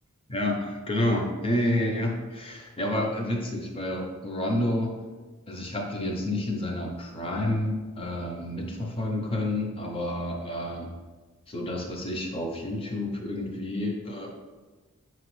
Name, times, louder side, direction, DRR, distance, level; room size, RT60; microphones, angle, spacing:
voice 1, 0.3-4.9 5.5-10.9 11.5-14.3, left 1 dB, 25° left, 1 dB, 0.5 m, -29 dB
5.1 x 2.9 x 3.1 m, 1.3 s
head